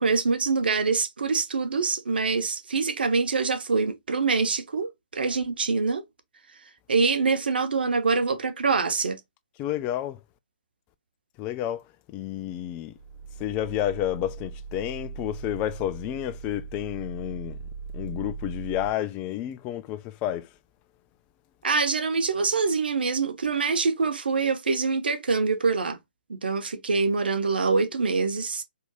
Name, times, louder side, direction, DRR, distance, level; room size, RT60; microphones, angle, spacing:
voice 1, 0.0-6.0 6.9-9.2 21.6-26.0 26.3-28.6, right 4 dB, 70° right, 0.9 m, -25 dB
voice 2, 9.6-10.2 11.4-11.8 12.1-12.9 13.4-17.6 17.9-20.5, left 12 dB, 25° left, 0.4 m, -30 dB
sound 1, 13.0-18.9, right 5 dB, 55° right, 1.4 m, -39 dB
4.3 x 2.8 x 2.3 m
figure-of-eight pair, 135°, 5 cm